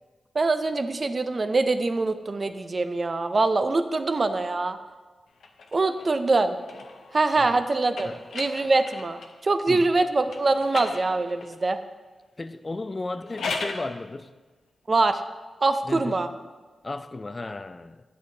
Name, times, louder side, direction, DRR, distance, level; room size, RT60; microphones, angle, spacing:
voice 1, 0.3-4.8 5.7-6.6 7.1-8.1 8.3-11.8 14.9-15.2 15.6-16.3, right 3 dB, 50° right, 0.5 m, -24 dB
sound 1, 5.4-9.4 10.3-11.6 13.1-13.9, left 4 dB, 85° left, 0.6 m, -37 dB
voice 2, 12.4-14.3 15.8-16.3 16.8-18.0, left 2 dB, 40° left, 0.3 m, -35 dB
8.4 x 6.3 x 2.7 m
cardioid pair, 45°, 0 cm